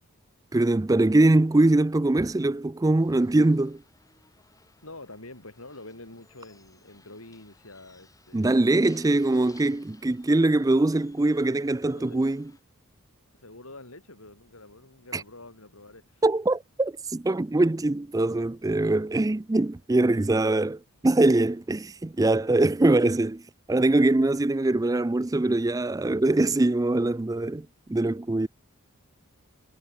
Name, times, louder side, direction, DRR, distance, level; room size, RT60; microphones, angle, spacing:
voice 1, 0.5-3.8 8.3-12.5 15.1-15.2 16.2-23.4 23.7-28.5, right 2 dB, 15° right, 0.4 m, -23 dB
sound 1, 3.0-12.6, left 3 dB, 15° left, 5.0 m, -59 dB
voice 2, 4.8-8.6 11.9-12.2 13.3-16.0, left 2 dB, 70° left, 6.0 m, -46 dB
head